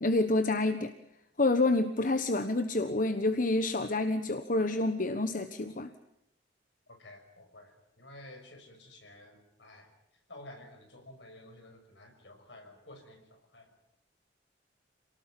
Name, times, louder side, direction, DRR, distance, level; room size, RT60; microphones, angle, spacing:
voice 1, 0.0-0.9 1.4-5.9, left 2 dB, 45° left, 9 dB, 1.2 m, -28 dB
voice 2, 6.9-9.9 10.3-13.7, left 1 dB, 70° left, 4 dB, 6.1 m, -52 dB
28.0 x 18.5 x 8.9 m, 0.84 s
head